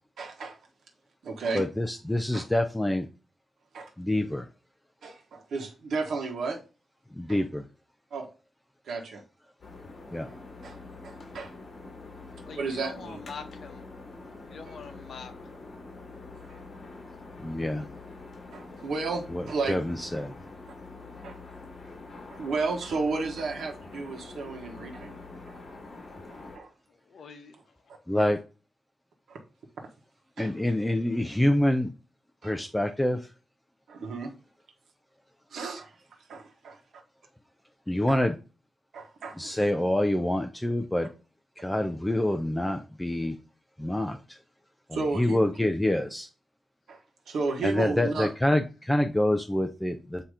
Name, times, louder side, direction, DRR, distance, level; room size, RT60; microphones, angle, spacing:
voice 1, 0.2-0.6 1.2-1.6 2.3-2.4 3.7-3.9 5.0-6.6 7.3-7.4 8.1-8.3 8.8-9.2 10.6-10.8 11.0-11.5 12.6-13.2 14.7-14.8 16.3-16.6 18.5-19.8 21.2-21.4 22.3-25.1 25.5-25.6 26.3-26.7 28.2-28.3 29.3-29.4 30.4-30.7 32.4-32.6 33.9-34.3 35.5-35.9 36.3-36.8 38.1-38.2 38.9-39.5 44.9-45.5 46.9-47.0 47.3-48.3, right 4 dB, 85° right, 1.3 m, -33 dB
voice 2, 1.5-3.1 4.0-4.5 7.2-7.6 10.1-10.3 17.4-17.8 19.3-20.3 28.1-28.4 30.4-31.9 32.4-33.2 37.9-38.4 39.4-41.1 41.6-43.4 43.8-44.4 44.9-46.3 47.6-50.2, left 1 dB, 5° left, 0.5 m, -26 dB
sound 1, 9.6-26.6, left 3 dB, 50° left, 2.4 m, -45 dB
voice 3, 12.4-13.8 14.5-15.3 27.1-27.6 31.1-31.2, left 5 dB, 70° left, 1.0 m, -43 dB
7.9 x 2.9 x 4.9 m
wide cardioid pair, 140°, 0 cm